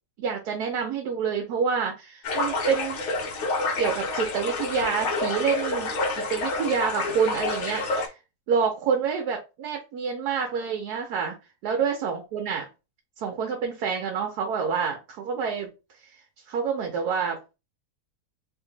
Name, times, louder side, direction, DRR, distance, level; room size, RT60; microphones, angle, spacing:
voice 1, 0.2-3.0 3.8-8.2 8.5-11.4 11.6-12.7 13.2-15.7 16.5-17.4, right 6 dB, 85° right, 2 dB, 1.2 m, -27 dB
sound 1, 2.2-8.1, left 3 dB, 55° left, 0.9 m, -28 dB
2.9 x 2.6 x 3.7 m, 0.28 s
omnidirectional pair, 1.7 m